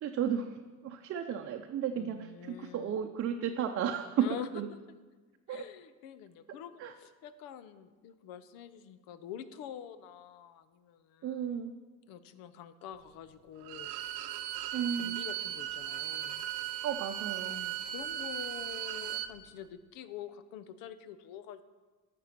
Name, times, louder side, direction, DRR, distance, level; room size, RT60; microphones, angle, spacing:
voice 1, 0.0-4.3 4.5-4.7 5.5-5.6 6.8-6.9 11.2-11.7 14.7-15.2 16.8-17.7, right 8 dB, 40° right, 3 dB, 0.6 m, -34 dB
voice 2, 1.9-3.1 4.2-4.5 5.5-6.7 7.0-11.4 12.1-13.9 15.0-16.5 17.5-21.6, left 9 dB, 75° left, 13 dB, 0.8 m, -46 dB
Bowed string instrument, 13.6-19.3, right 12 dB, 80° right, 0.8 m, -37 dB
11.0 x 6.8 x 5.9 m, 1.3 s
cardioid pair, 120°, 35 cm